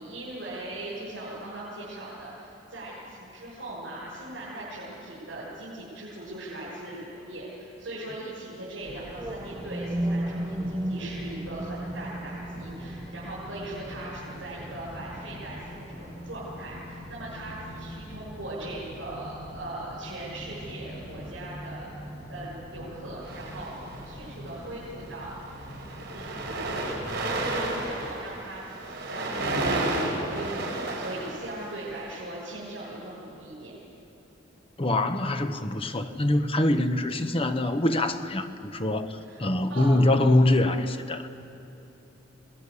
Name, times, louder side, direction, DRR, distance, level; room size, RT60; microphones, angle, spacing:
voice 1, 0.0-21.9 22.3-25.4 26.1-30.7 31.0-33.7 39.2-39.9, right 1 dB, 80° right, -8 dB, 7.1 m, -40 dB
sound 1, 8.8-28.0, equal, 60° left, 5.9 m, -43 dB
sound 2, 9.1-17.1, right 1 dB, 15° right, 0.9 m, -35 dB
sound 3, 23.2-24.2 25.0-25.2 25.5-32.0, right 2 dB, 60° right, 4.8 m, -31 dB
voice 2, 34.8-41.3, left 1 dB, 30° left, 8 dB, 1.0 m, -24 dB
27.0 x 20.0 x 6.9 m, 3.0 s
head